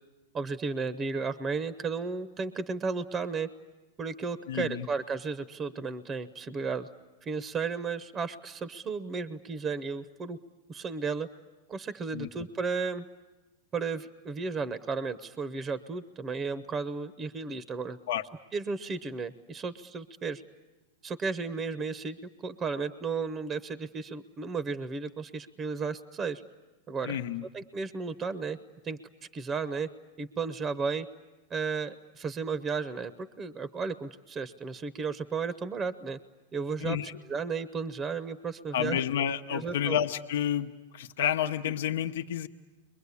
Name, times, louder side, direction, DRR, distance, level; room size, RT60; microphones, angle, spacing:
voice 1, 0.3-3.5 4.0-6.9 7.2-10.4 10.7-11.3 11.7-13.1 13.7-18.0 18.5-20.4 21.0-26.4 26.9-27.2 27.5-28.6 28.8-29.0 29.3-29.9 30.2-31.1 31.5-36.2 36.5-37.0 37.3-39.0 39.5-40.0, right 4 dB, 25° right, 14 dB, 0.8 m, -34 dB
voice 2, 4.5-4.9 12.1-12.3 18.1-18.2 27.0-27.4 36.8-37.2 38.7-42.5, left 9 dB, 70° left, 5 dB, 0.9 m, -30 dB
30.0 x 23.0 x 8.4 m, 1.1 s
hypercardioid pair, 120°, 0 cm